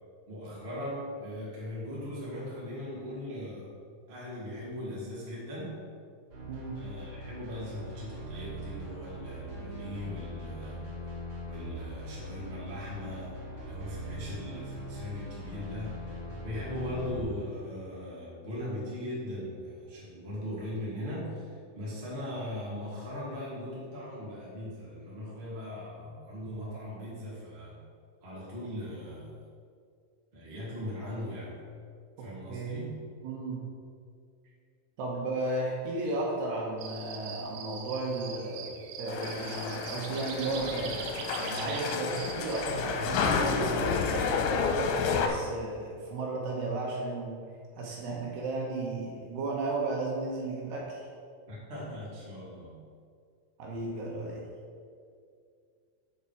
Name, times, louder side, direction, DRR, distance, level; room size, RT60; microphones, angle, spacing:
voice 1, 0.3-3.7 4.1-5.8 6.7-10.8 11.4-27.8 28.2-29.3 30.3-31.5 32.2-33.0 51.5-52.8, left 1 dB, 30° right, -7 dB, 1.0 m, -39 dB
sound 1, 6.3-17.2, equal, 45° right, 3.3 m, -41 dB
voice 2, 6.4-6.8 32.2-32.8 33.2-33.6 35.0-47.3 47.8-51.1 53.6-54.4, right 2 dB, 75° right, -3 dB, 2.8 m, -34 dB
sound 2, 36.8-42.6, right 7 dB, 90° right, 3.1 m, -42 dB
sound 3, 39.1-45.3, left 5 dB, 85° left, 3.1 m, -30 dB
7.3 x 7.1 x 4.9 m, 2.2 s
omnidirectional pair, 5.5 m